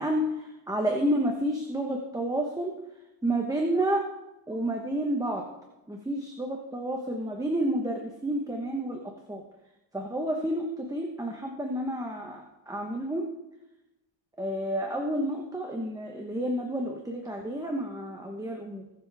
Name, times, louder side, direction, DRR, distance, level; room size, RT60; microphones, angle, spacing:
voice 1, 0.0-2.7 3.2-4.0 4.5-5.4 5.9-9.0 9.3-9.4 9.9-13.2 14.4-18.9, right 1 dB, 10° right, 1 dB, 1.1 m, -30 dB
21.5 x 7.5 x 3.5 m, 0.96 s
cardioid pair, 140°, 47 cm